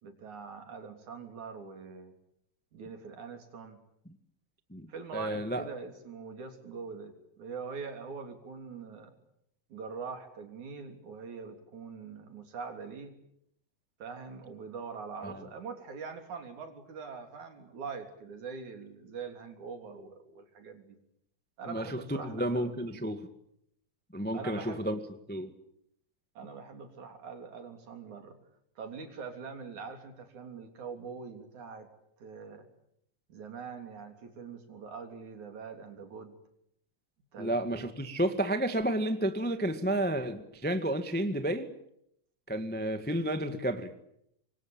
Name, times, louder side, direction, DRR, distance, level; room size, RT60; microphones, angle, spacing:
voice 1, 0.0-2.1 2.7-3.8 4.9-9.1 9.7-13.1 14.0-21.0 21.6-22.7 23.1-23.2 24.3-24.8 26.3-28.4 28.8-31.9 32.2-32.7 33.3-36.4 37.3-37.9, right 5 dB, 70° right, 6 dB, 4.7 m, -43 dB
voice 2, 5.1-5.7 15.2-15.3 21.7-23.2 24.1-25.0 25.3-25.5 37.4-41.7 42.5-43.9, right 1 dB, 5° left, 8 dB, 0.8 m, -31 dB
26.5 x 23.0 x 8.9 m, 0.75 s
omnidirectional pair, 3.6 m